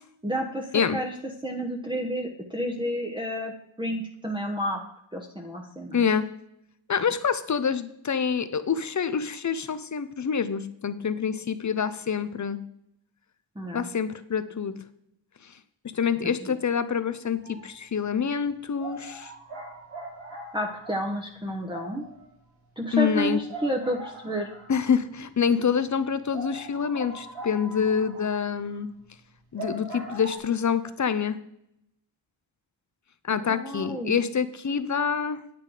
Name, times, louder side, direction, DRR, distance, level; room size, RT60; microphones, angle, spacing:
voice 1, 0.2-1.1 1.4-3.5 3.8-4.8 5.1-6.0 13.5-13.9 16.4-16.6 20.5-22.1 22.8-24.5 33.3-34.1, equal, 10° right, -1 dB, 1.0 m, -30 dB
voice 2, 5.9-6.3 6.9-12.6 13.7-14.8 15.4-15.5 15.9-19.3 22.9-23.4 24.7-28.9 29.5-31.4 33.2-35.4, left 7 dB, 40° left, 13 dB, 0.7 m, -26 dB
sound 1, 17.3-17.8 18.1-18.2 18.8-25.1 25.5-25.6 25.9-26.0 26.3-30.4, right 2 dB, 85° right, 4.8 m, -41 dB
9.5 x 8.6 x 4.9 m, 0.76 s
wide cardioid pair, 115°, 46 cm